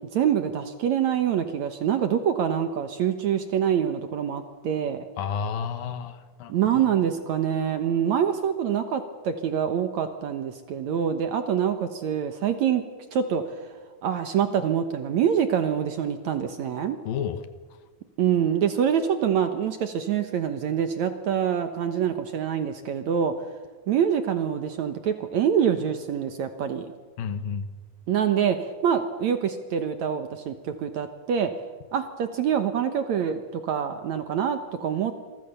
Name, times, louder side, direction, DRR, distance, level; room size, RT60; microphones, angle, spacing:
voice 1, 0.1-5.1 6.5-12.8 13.1-13.6 14.0-17.0 18.2-23.3 23.9-26.9 28.1-31.5 31.9-35.2, right 8 dB, 65° right, 8 dB, 2.1 m, -25 dB
voice 2, 5.2-6.9 17.0-17.4 27.2-27.7, left 7 dB, 70° left, 10 dB, 2.9 m, -31 dB
27.0 x 23.0 x 6.9 m, 1.4 s
omnidirectional pair, 4.3 m